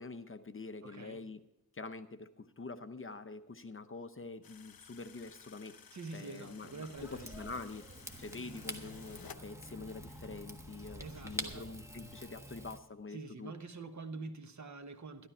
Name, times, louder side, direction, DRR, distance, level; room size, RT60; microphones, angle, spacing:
voice 1, 0.0-1.4 1.7-5.8 6.1-7.9 8.2-13.5, left 3 dB, 35° left, 0.8 m, -46 dB
voice 2, 0.8-1.2 5.9-7.5 11.0-11.7 13.1-15.3, right 3 dB, 50° right, 1.2 m, -46 dB
sound 1, 4.4-9.4, left 7 dB, 75° left, 0.8 m, -56 dB
Rain / Fire, 7.0-12.8, equal, 10° right, 1.3 m, -46 dB
12.5 x 12.0 x 4.4 m
wide cardioid pair, 120°, 36 cm